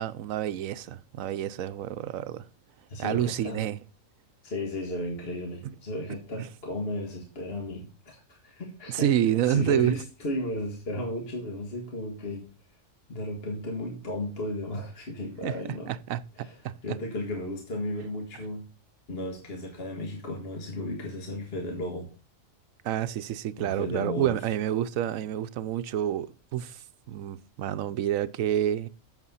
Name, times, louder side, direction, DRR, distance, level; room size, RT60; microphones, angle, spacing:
voice 1, 0.0-2.4 3.0-3.8 5.6-5.7 8.9-9.9 15.4-15.6 15.9-17.0 22.8-26.8 27.1-28.9, right 11 dB, 80° right, 1.0 m, -28 dB
voice 2, 2.9-3.7 4.4-9.1 9.5-12.5 13.1-15.9 16.4-18.7 19.1-22.1 23.6-24.4, left 1 dB, 45° left, 1.9 m, -34 dB
8.1 x 7.4 x 5.6 m
omnidirectional pair, 1.4 m